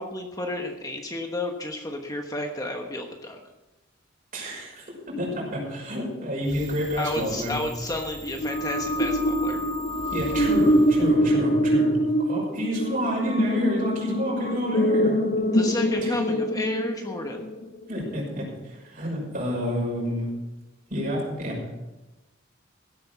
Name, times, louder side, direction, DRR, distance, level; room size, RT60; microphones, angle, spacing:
voice 1, 0.0-3.4 6.9-9.6 15.5-17.5, left 1 dB, 20° left, 3 dB, 1.1 m, -32 dB
voice 2, 4.3-7.6 10.1-11.9 12.2-15.2 16.0-16.1 17.9-20.3 20.9-21.6, equal, 45° right, -2 dB, 5.9 m, -29 dB
sound 1, 6.4-11.8, right 3 dB, 70° right, 2.4 m, -43 dB
sound 2, 8.3-17.6, equal, 45° left, 1.2 m, -24 dB
15.5 x 8.7 x 6.1 m, 1.1 s
head